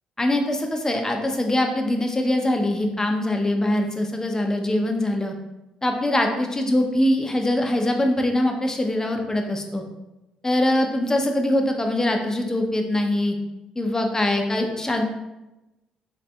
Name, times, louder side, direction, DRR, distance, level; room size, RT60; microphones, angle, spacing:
voice 1, 0.2-5.3 5.8-9.8 10.4-13.4 13.8-15.0, left 1 dB, 20° left, 3 dB, 0.6 m, -23 dB
3.9 x 3.3 x 2.3 m, 0.98 s
hypercardioid pair, 45°, 3 cm